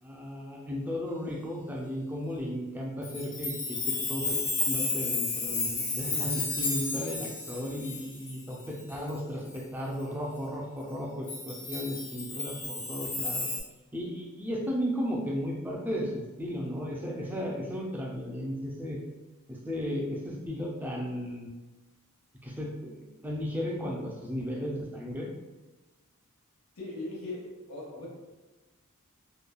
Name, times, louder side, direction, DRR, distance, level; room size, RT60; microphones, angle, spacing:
voice 1, 0.0-13.5 13.9-19.0 19.5-21.5 22.4-25.3, equal, 10° right, -2 dB, 0.4 m, -35 dB
Chime, 3.0-9.1 9.5-9.6 11.3-13.6, left 3 dB, 35° left, 0.7 m, -32 dB
voice 2, 26.8-28.1, left 2 dB, 85° left, -5 dB, 1.0 m, -39 dB
3.0 x 2.2 x 2.2 m, 1.2 s
head